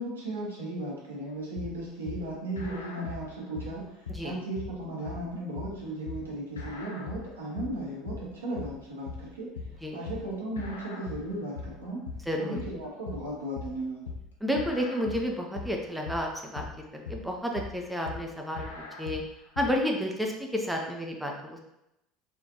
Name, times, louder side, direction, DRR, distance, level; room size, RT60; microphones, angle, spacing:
voice 1, 0.0-9.5 9.9-12.0 12.4-14.0, right 1 dB, 80° right, -5 dB, 1.0 m, -36 dB
sound 1, 1.6-19.8, left 4 dB, 75° left, 0.4 m, -40 dB
voice 2, 12.3-12.6 14.4-16.7 16.9-18.6 19.0-19.2 19.6-21.6, equal, 5° right, 0 dB, 0.5 m, -31 dB
3.6 x 2.4 x 2.7 m, 0.86 s
figure-of-eight pair, 65°, 0 cm